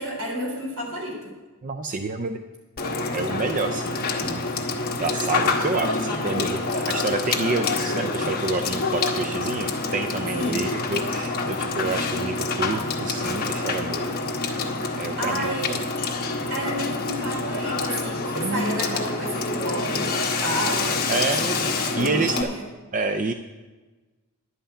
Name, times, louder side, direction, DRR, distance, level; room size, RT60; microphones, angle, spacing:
voice 1, 0.0-1.3 10.3-10.6 14.8-15.7 16.5-21.2 21.5-22.6, right 1 dB, 80° right, -3 dB, 3.5 m, -31 dB
voice 2, 1.6-2.4 3.1-4.5 5.0-14.2 15.0-15.8 18.4-19.0 21.1-22.5 22.9-23.3, right 3 dB, 35° right, 7 dB, 0.5 m, -28 dB
Water / Water tap faucet / Sink (filling or washing), 2.8-22.4, left 3 dB, 45° left, 1.3 m, -27 dB
11.5 x 5.6 x 8.7 m, 1.2 s
head